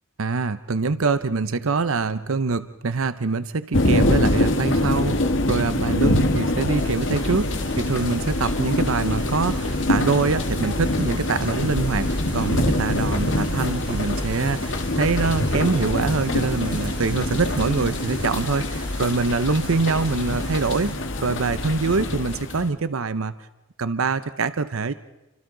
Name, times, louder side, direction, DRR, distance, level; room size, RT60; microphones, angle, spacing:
voice 1, 0.2-7.5 7.8-23.3 23.8-24.9, right 4 dB, 90° right, 13 dB, 0.8 m, -24 dB
sound 1, 3.7-22.7, left 1 dB, 65° left, 1.7 m, -24 dB
sound 2, 6.8-20.9, right 1 dB, 20° right, 3.8 m, -38 dB
30.0 x 25.5 x 3.9 m, 1.0 s
head